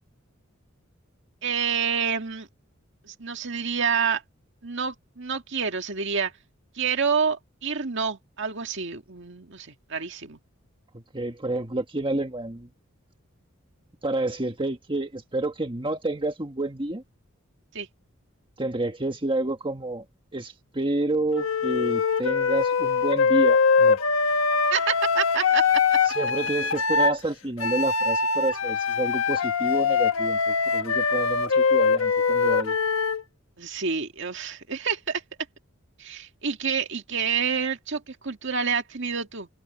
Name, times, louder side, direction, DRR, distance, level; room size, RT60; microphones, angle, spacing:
voice 1, 1.4-2.5 3.0-4.2 4.6-6.3 6.7-10.4 17.7-17.9 24.7-25.8 33.6-35.2 36.0-39.5, right 6 dB, 65° right, 2.0 m, -28 dB
voice 2, 10.9-12.7 14.0-17.0 18.6-20.0 20.3-24.0 26.0-32.8, right 2 dB, 25° right, 1.6 m, -29 dB
Wind instrument woodwind instrument, 21.3-27.2 27.6-33.2, left 5 dB, 85° left, 1.2 m, -23 dB
head